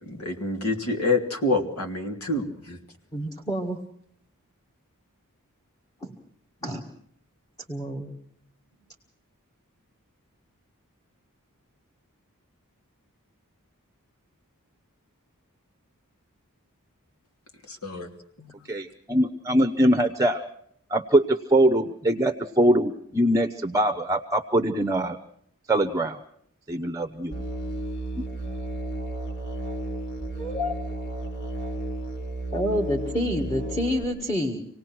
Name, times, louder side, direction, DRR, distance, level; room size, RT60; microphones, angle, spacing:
voice 1, 0.0-2.8 17.7-18.1 18.4-18.5, left 2 dB, 75° left, 4 dB, 3.1 m, -27 dB
voice 2, 3.1-3.8 6.0-6.1 6.6-6.8 7.7-8.1 30.3-30.7 32.5-34.6, left 1 dB, 15° left, 3 dB, 1.8 m, -28 dB
voice 3, 18.7-20.4 20.9-25.2 25.7-26.2 26.7-27.4, right 1 dB, 15° right, 8 dB, 0.9 m, -22 dB
Musical instrument, 27.3-34.0, right 1 dB, 55° left, 3.9 m, -33 dB
27.0 x 18.5 x 6.1 m, 0.66 s
head